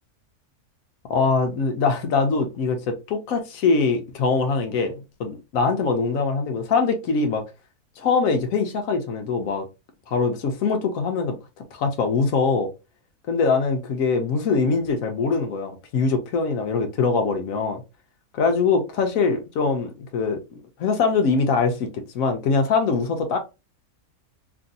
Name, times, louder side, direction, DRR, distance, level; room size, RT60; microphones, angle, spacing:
voice 1, 1.1-4.9 5.2-7.4 8.0-9.6 10.1-11.4 11.7-12.7 13.3-17.8 18.3-20.4 20.8-23.4, left 4 dB, 70° left, 1.0 m, -23 dB
2.9 x 2.6 x 2.6 m
omnidirectional pair, 1.6 m